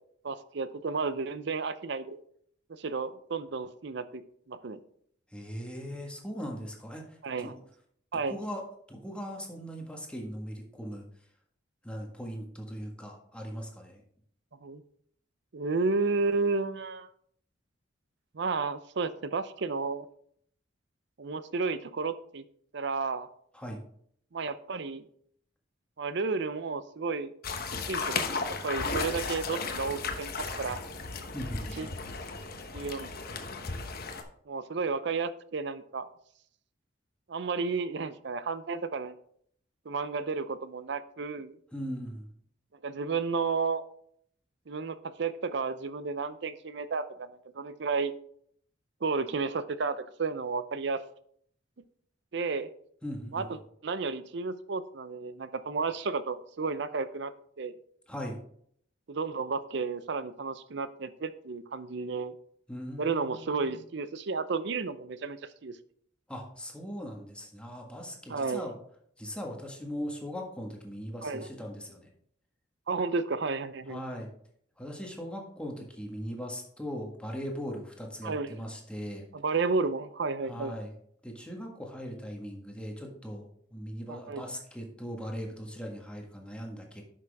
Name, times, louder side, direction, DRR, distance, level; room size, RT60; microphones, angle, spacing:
voice 1, 0.2-2.2 2.7-4.2 4.5-4.8 7.2-7.5 8.1-8.4 14.6-14.8 15.5-17.1 18.3-20.1 21.2-22.4 22.7-23.3 24.3-25.0 26.0-27.3 27.9-30.3 30.6-30.8 31.8-31.9 32.7-33.1 34.5-36.1 37.3-39.1 39.9-41.6 42.8-43.8 44.7-48.1 49.0-51.0 52.3-52.7 53.3-53.5 53.8-57.3 57.6-57.7 59.1-62.4 63.0-65.8 68.3-68.7 71.2-71.5 72.9-74.0 78.2-78.5 79.3-80.7 84.1-84.4, right 4 dB, 65° right, 13 dB, 0.6 m, -32 dB
voice 2, 5.3-7.5 8.1-8.6 8.9-11.0 11.8-14.0 23.5-23.8 31.3-31.9 41.7-42.3 53.0-53.4 58.1-58.4 62.7-63.8 66.3-68.7 69.2-72.1 73.9-74.3 74.8-79.2 80.4-80.9 81.2-87.0, equal, 5° left, 0 dB, 1.6 m, -39 dB
sound 1, 27.4-34.2, left 4 dB, 55° left, 1.0 m, -35 dB
10.5 x 6.1 x 3.5 m, 0.65 s
head